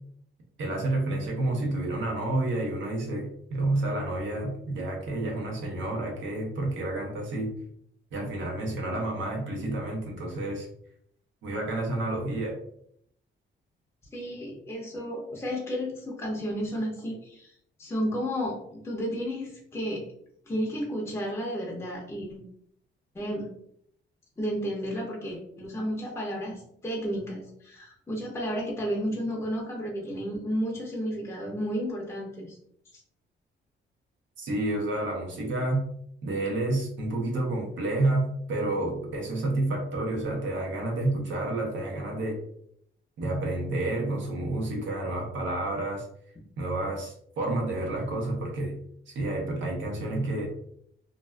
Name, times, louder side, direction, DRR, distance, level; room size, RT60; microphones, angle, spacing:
voice 1, 0.6-7.5 8.1-10.7 11.4-12.6 34.4-35.8 36.2-42.4 43.2-46.1 46.6-48.8 49.1-50.5, right 2 dB, 80° right, 0 dB, 0.8 m, -29 dB
voice 2, 14.1-17.5 17.8-20.0 20.5-22.4 23.1-23.5 24.4-32.6, equal, 15° left, -3 dB, 0.5 m, -32 dB
2.4 x 2.3 x 2.2 m, 0.68 s
cardioid pair, 130°, 19 cm